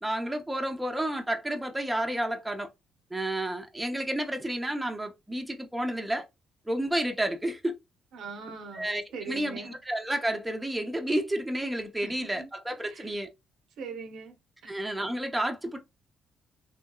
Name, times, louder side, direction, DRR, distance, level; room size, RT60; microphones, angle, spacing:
voice 1, 0.0-2.7 3.1-6.3 6.7-7.8 8.7-13.3 14.7-15.8, right 1 dB, 10° right, 0.6 m, -31 dB
voice 2, 8.1-9.7 12.0-12.5 12.8-13.1 13.8-14.4 14.6-14.7, right 5 dB, 80° right, 0.7 m, -41 dB
3.1 x 2.7 x 2.2 m
cardioid pair, 90°, 0 cm